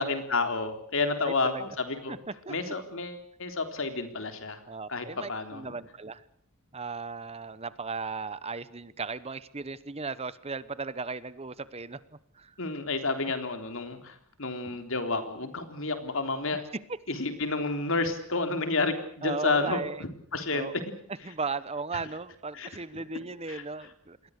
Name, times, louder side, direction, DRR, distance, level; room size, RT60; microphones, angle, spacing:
voice 1, 0.0-2.2 2.5-4.6 4.9-5.6 12.6-16.6 17.1-20.7 22.5-22.7 23.5-23.6, left 3 dB, 65° left, 7 dB, 3.7 m, -30 dB
voice 2, 1.2-1.6 2.1-2.2 2.5-2.7 4.7-6.2 6.7-12.0 12.3-12.5 16.5-16.6 19.2-20.0 20.5-20.8 21.2-24.3, right 4 dB, 30° right, 16 dB, 0.9 m, -36 dB
28.5 x 21.5 x 6.6 m, 0.63 s
head